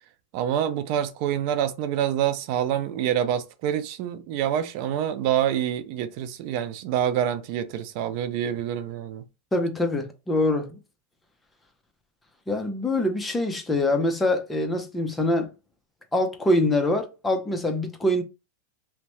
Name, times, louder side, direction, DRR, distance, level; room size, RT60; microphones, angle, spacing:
voice 1, 0.3-9.2, right 10 dB, 50° right, 0.3 m, -26 dB
voice 2, 9.5-10.8 12.5-15.5 16.1-18.2, left 1 dB, 10° left, 0.6 m, -24 dB
2.7 x 2.1 x 3.0 m
supercardioid pair, 140°, 0 cm